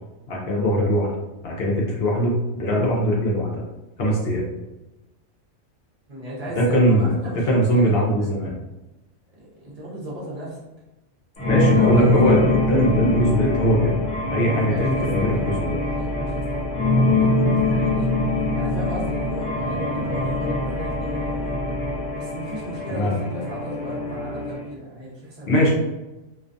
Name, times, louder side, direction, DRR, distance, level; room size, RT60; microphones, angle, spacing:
voice 1, 0.3-1.1 1.4-3.6 4.0-4.4 6.5-7.1 7.5-8.6 11.4-13.9 14.3-15.8 22.9-23.1 25.5-25.7, equal, 60° left, -2 dB, 0.7 m, -20 dB
voice 2, 6.1-8.3 9.4-10.6 11.5-12.4 14.4-18.1 18.5-21.6 22.1-25.7, right 1 dB, 35° right, -6 dB, 0.7 m, -35 dB
sound 1, 11.4-24.6, left 2 dB, 40° left, 1.1 m, -23 dB
2.5 x 2.3 x 2.5 m, 1.0 s
omnidirectional pair, 1.4 m